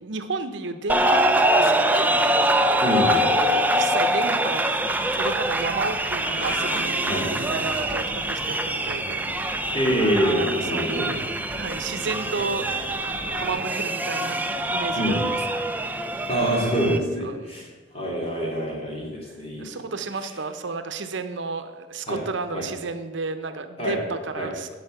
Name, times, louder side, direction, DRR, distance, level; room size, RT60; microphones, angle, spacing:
voice 1, 0.0-2.2 3.0-4.6 5.1-9.3 10.2-11.3 11.6-12.7 13.4-14.4 14.7-15.4 16.9-17.7 18.4-18.8 19.6-24.7, right 3 dB, 70° right, 9 dB, 0.7 m, -32 dB
sound 1, 0.9-17.0, right 1 dB, 10° right, 0.4 m, -24 dB
voice 2, 2.8-3.2 7.0-7.3 9.7-11.1 15.0-15.2 16.3-17.7 17.9-19.7 22.1-22.2 22.5-22.7 23.8-24.0 24.4-24.5, equal, 30° left, -2 dB, 2.8 m, -25 dB
sound 2, 4.7-13.5, equal, 80° left, 3.0 m, -38 dB
10.0 x 5.6 x 7.9 m, 1.3 s
head